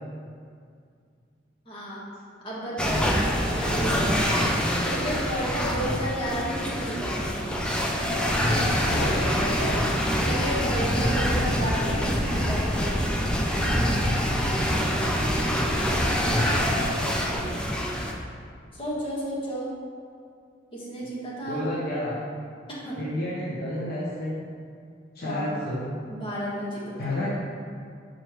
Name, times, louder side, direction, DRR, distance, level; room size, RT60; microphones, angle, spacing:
voice 1, 1.6-2.0 2.4-3.0 3.5-4.2 4.8-7.3 10.2-12.9 18.7-19.7 20.7-21.6 22.8-23.0 25.2-25.4 26.1-27.1, right 1 dB, 30° left, -7 dB, 1.4 m, -32 dB
sound 1, 2.8-18.1, equal, 5° left, 0.4 m, -25 dB
voice 2, 3.8-4.2 8.4-9.7 21.4-22.2 23.0-24.3 25.1-25.8 27.0-27.3, left 1 dB, 55° left, -8 dB, 1.0 m, -30 dB
6.2 x 5.0 x 3.0 m, 2.2 s
head